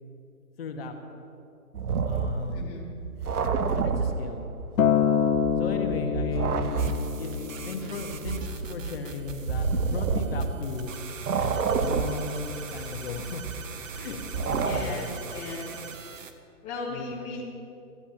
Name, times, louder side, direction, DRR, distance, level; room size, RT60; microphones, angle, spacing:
voice 1, 0.6-0.9 2.0-2.8 3.3-4.5 5.6-6.9 7.2-10.9 11.4-13.5 14.0-15.1 16.9-17.3, left 4 dB, 40° left, 4 dB, 1.5 m, -37 dB
sound 1, 1.7-4.8 5.2-10.9 11.2-15.3, right 5 dB, 80° right, 1.0 m, -29 dB
voice 2, 2.5-2.8 14.6-15.7 16.6-17.4, left 3 dB, 10° left, -5 dB, 1.0 m, -36 dB
Acoustic guitar, 4.8-9.1 9.9-10.0, left 8 dB, 70° left, 0.8 m, -27 dB
sound 2, 6.8-16.3, right 6 dB, 60° right, 1.2 m, -43 dB
25.0 x 14.0 x 2.9 m, 2.7 s
hypercardioid pair, 155°, 45 cm